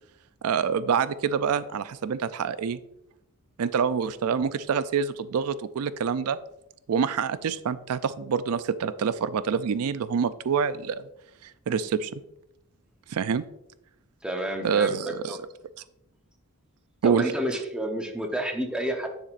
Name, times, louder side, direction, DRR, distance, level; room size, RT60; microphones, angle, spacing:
voice 1, 0.4-2.8 3.6-6.4 6.9-11.0 11.4-12.2 13.1-13.4 14.6-15.3 17.0-17.2, right 6 dB, 80° right, 14 dB, 0.4 m, -26 dB
voice 2, 14.2-15.4 17.0-19.1, right 1 dB, 5° right, 3 dB, 0.8 m, -30 dB
9.5 x 7.1 x 2.5 m, 0.83 s
head